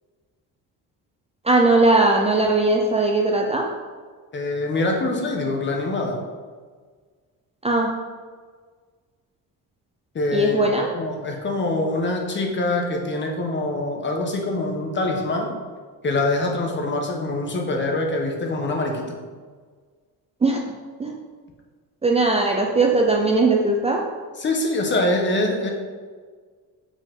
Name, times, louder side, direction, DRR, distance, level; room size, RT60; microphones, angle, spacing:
voice 1, 1.5-3.7 7.6-7.9 10.3-10.9 20.4-20.6 21.0-21.1 22.0-24.0, right 2 dB, 15° right, 0 dB, 0.5 m, -19 dB
voice 2, 4.3-6.2 10.1-15.5 16.0-19.2 24.4-25.7, left 2 dB, 30° left, 1 dB, 1.2 m, -24 dB
7.3 x 5.2 x 3.7 m, 1.5 s
cardioid pair, 135°, 36 cm